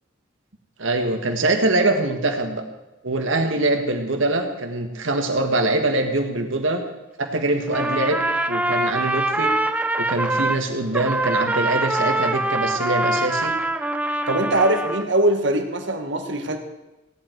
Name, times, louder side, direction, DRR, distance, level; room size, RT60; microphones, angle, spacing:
voice 1, 0.8-2.6 3.0-6.8 7.2-8.2 8.5-9.5 10.0-13.5, right 2 dB, 80° right, 5 dB, 1.7 m, -23 dB
Trumpet, 7.7-10.6 10.9-15.1, right 2 dB, 5° right, 0.6 m, -24 dB
voice 2, 14.3-16.6, right 1 dB, 65° right, 5 dB, 1.5 m, -21 dB
16.5 x 11.0 x 4.6 m, 1.0 s
head